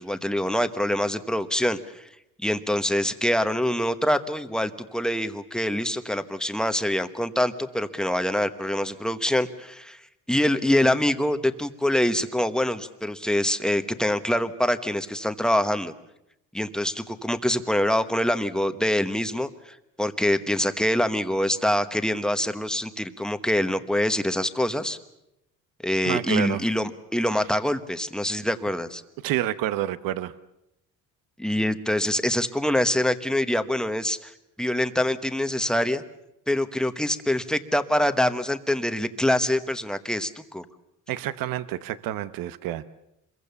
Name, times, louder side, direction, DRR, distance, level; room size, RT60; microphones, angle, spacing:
voice 1, 0.0-2.1 2.4-10.0 10.3-15.9 16.5-25.0 25.8-29.0 31.4-34.3 34.6-36.0 36.5-40.6, left 1 dB, ahead, 10 dB, 1.1 m, -25 dB
voice 2, 26.0-26.6 29.2-30.3 41.1-42.9, right 13 dB, 75° right, 15 dB, 1.0 m, -28 dB
26.5 x 22.5 x 6.9 m, 0.86 s
cardioid pair, 140°, 34 cm